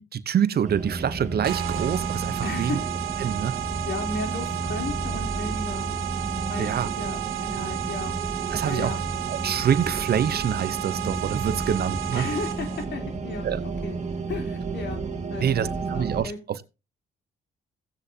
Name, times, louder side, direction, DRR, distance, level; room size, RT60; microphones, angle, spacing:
voice 1, 0.0-2.8 3.2-3.6 6.6-6.9 8.5-8.9 9.3-12.3 13.4-13.6 15.4-16.6, right 8 dB, 50° right, 0.8 m, -26 dB
sound 1, 0.6-16.2, right 3 dB, 35° right, 2.0 m, -32 dB
sound 2, 1.4-12.8, right 15 dB, 90° right, 1.3 m, -33 dB
voice 2, 2.4-2.8 3.8-5.9 6.5-8.2 8.6-9.0 12.1-14.0 14.3-15.0 15.3-16.4, left 3 dB, 60° left, 3.5 m, -34 dB
16.5 x 8.5 x 2.8 m
cardioid pair, 90°, 20 cm